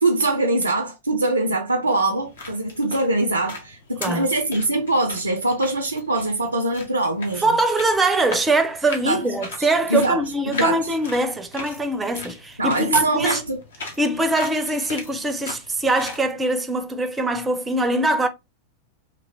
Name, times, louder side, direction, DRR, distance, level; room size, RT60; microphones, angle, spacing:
voice 1, 0.0-7.5 9.0-9.2 9.6-10.9 12.6-13.6, right 2 dB, 80° right, 0.3 m, -23 dB
sound 1, 2.1-16.2, left 3 dB, 65° left, 0.8 m, -38 dB
voice 2, 7.4-13.4 14.0-18.3, right 2 dB, 15° right, 0.4 m, -22 dB
2.9 x 2.7 x 2.6 m
figure-of-eight pair, 90°, 0 cm